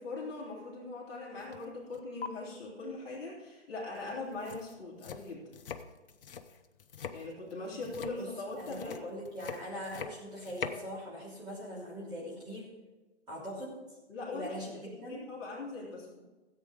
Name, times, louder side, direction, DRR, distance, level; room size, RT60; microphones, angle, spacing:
voice 1, 0.0-5.4 7.1-9.0 14.1-14.5 15.0-16.2, left 3 dB, 25° left, -6 dB, 3.2 m, -41 dB
sound 1, 1.4-1.7 1.9-2.3 3.9-4.0 4.3-10.9, left 6 dB, 50° left, 0.8 m, -43 dB
voice 2, 8.6-12.7 13.3-13.8 14.3-15.3, equal, 10° right, -7 dB, 3.2 m, -41 dB
14.5 x 8.2 x 5.0 m, 1.2 s
hypercardioid pair, 150°, 36 cm